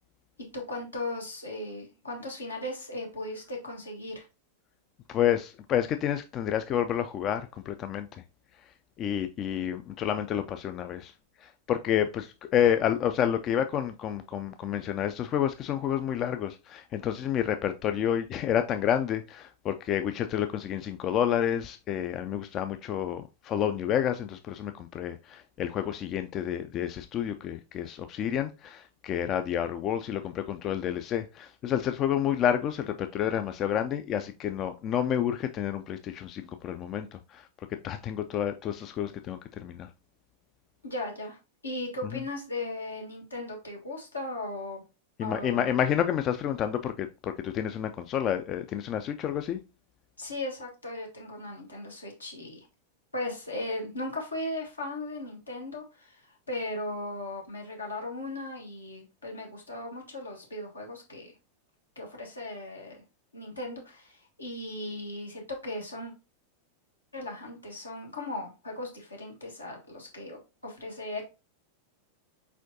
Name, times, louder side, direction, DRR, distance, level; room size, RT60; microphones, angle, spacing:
voice 1, 0.5-4.3 40.8-44.8 45.2-45.7 50.2-52.6 53.1-61.3 61.9-63.0 63.3-66.1 67.1-71.3, left 2 dB, 80° left, 1.4 m, -37 dB
voice 2, 5.1-8.2 9.0-11.1 11.4-37.5 37.8-39.9 45.2-49.6, left 9 dB, 35° left, 0.3 m, -29 dB
4.5 x 4.1 x 2.7 m
figure-of-eight pair, 90°, 0 cm